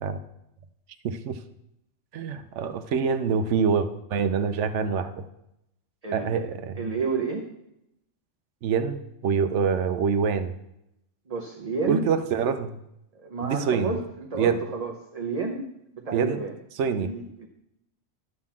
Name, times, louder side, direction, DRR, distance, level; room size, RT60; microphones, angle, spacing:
voice 1, 1.0-1.4 2.1-5.3 6.1-6.9 8.6-10.5 11.9-12.8 13.4-13.9 14.4-14.6 16.1-16.4 16.8-17.1, right 6 dB, 75° right, 11 dB, 0.9 m, -25 dB
voice 2, 6.0-6.4 6.8-7.5 11.3-12.1 13.1-15.7 15.9-16.5 16.9-17.5, right 4 dB, 35° right, 1 dB, 0.8 m, -31 dB
11.5 x 3.8 x 7.3 m, 0.84 s
omnidirectional pair, 1.3 m